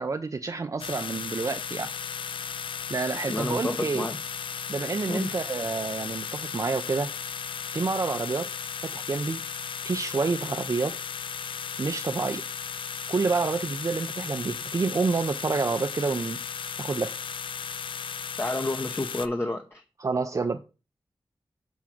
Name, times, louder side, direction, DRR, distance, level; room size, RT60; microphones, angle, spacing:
voice 1, 0.0-1.9 2.9-4.1 4.7-7.1 7.7-8.5 8.8-9.4 9.8-11.0 11.8-12.4 13.1-16.4 16.8-17.1 20.0-20.6, right 4 dB, 40° right, 0.5 m, -28 dB
sound 1, 0.8-19.3, left 7 dB, 70° left, 0.4 m, -35 dB
voice 2, 3.3-4.2 5.1-5.3 18.4-19.8, left 2 dB, 25° left, 0.7 m, -30 dB
6.1 x 3.6 x 5.8 m
wide cardioid pair, 80°, 9 cm